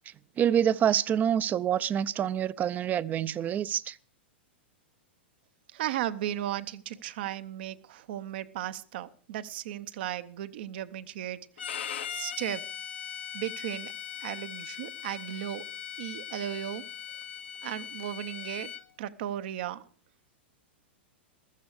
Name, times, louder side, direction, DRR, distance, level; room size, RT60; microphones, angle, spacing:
voice 1, 0.4-4.0, right 9 dB, 25° right, 0.6 m, -26 dB
voice 2, 5.7-11.7 12.1-12.7 13.3-13.9 14.2-15.6 16.0-16.9 17.6-18.7 19.0-19.9, right 12 dB, 60° right, 0.9 m, -35 dB
Bowed string instrument, 11.6-18.8, left 9 dB, 75° left, 1.2 m, -40 dB
15.0 x 13.0 x 4.8 m
hypercardioid pair, 105°, 6 cm